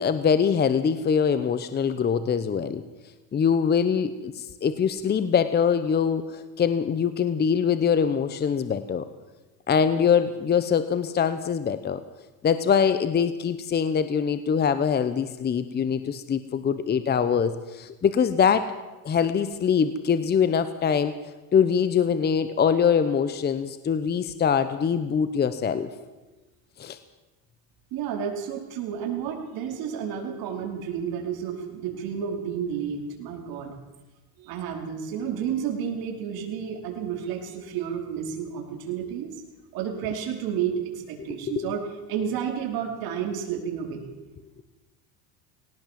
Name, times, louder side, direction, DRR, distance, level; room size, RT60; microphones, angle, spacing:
voice 1, 0.0-2.8 3.3-9.1 9.7-12.0 12.4-18.7 19.0-25.9 26.8-27.0 41.2-41.7, left 7 dB, 25° left, 12 dB, 1.0 m, -23 dB
voice 2, 27.9-33.7 34.4-39.4 39.7-41.8 42.1-44.1, right 8 dB, 60° right, 2 dB, 5.0 m, -31 dB
19.0 x 18.0 x 7.6 m, 1.1 s
cardioid pair, 130°, 41 cm